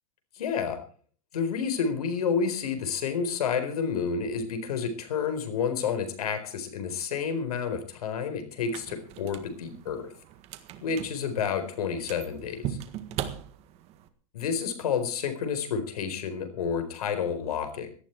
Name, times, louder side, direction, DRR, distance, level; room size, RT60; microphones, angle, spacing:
voice 1, 0.4-0.8 1.3-10.1 10.8-12.8 14.3-17.9, left 6 dB, 90° left, 10 dB, 4.3 m, -30 dB
sound 1, 8.6-14.1, right 10 dB, 35° right, 1.6 m, -40 dB
18.0 x 12.5 x 4.6 m, 0.43 s
supercardioid pair, 155°, 19 cm